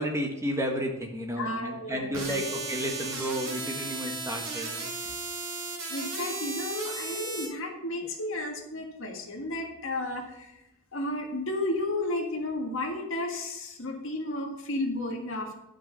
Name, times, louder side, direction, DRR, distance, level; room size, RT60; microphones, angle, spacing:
voice 1, 0.0-5.1, equal, 15° right, 2 dB, 1.3 m, -32 dB
voice 2, 1.4-2.5 5.9-10.6 10.9-15.6, left 1 dB, 60° left, 2 dB, 1.7 m, -33 dB
sound 1, 2.1-7.5, right 3 dB, 60° right, 2.9 m, -35 dB
10.5 x 6.0 x 5.6 m, 0.90 s
head